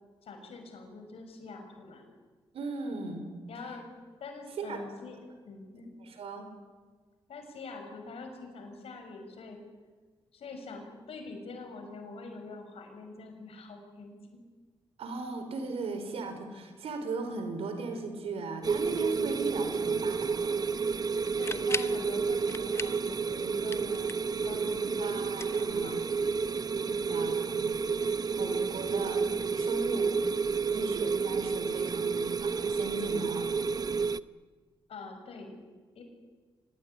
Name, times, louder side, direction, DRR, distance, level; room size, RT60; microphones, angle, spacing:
voice 1, 0.2-2.0 3.5-3.9 4.2-5.2 5.4-5.9 7.3-9.6 10.3-14.4 21.4-24.1 24.4-26.0 26.8-27.1 34.9-35.6 35.9-36.0, left 3 dB, 70° left, 5 dB, 6.3 m, -45 dB
voice 2, 2.5-3.2 4.6-4.8 6.0-6.5 15.0-20.6 25.0-26.0 27.1-29.3 29.5-30.3 30.7-33.5, right 3 dB, 75° right, 7 dB, 4.9 m, -37 dB
sound 1, 18.6-34.2, right 5 dB, 40° right, 0.8 m, -30 dB
sound 2, 21.2-22.0 22.5-23.1 23.4-24.4 25.3-26.2, left 3 dB, 25° left, 1.0 m, -38 dB
24.0 x 20.0 x 9.9 m, 1.4 s
cardioid pair, 70°, 10 cm